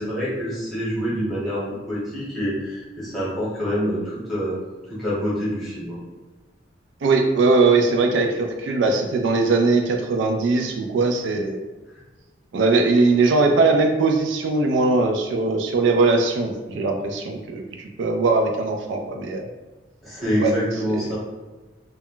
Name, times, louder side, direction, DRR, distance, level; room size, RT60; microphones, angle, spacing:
voice 1, 0.0-1.6 1.9-4.6 4.9-6.0 20.0-21.2, equal, ahead, -9 dB, 0.9 m, -26 dB
voice 2, 7.0-11.6 12.5-19.5 20.4-20.5 20.9-21.2, right 3 dB, 75° right, 3 dB, 0.3 m, -20 dB
2.2 x 2.1 x 3.8 m, 1.2 s
head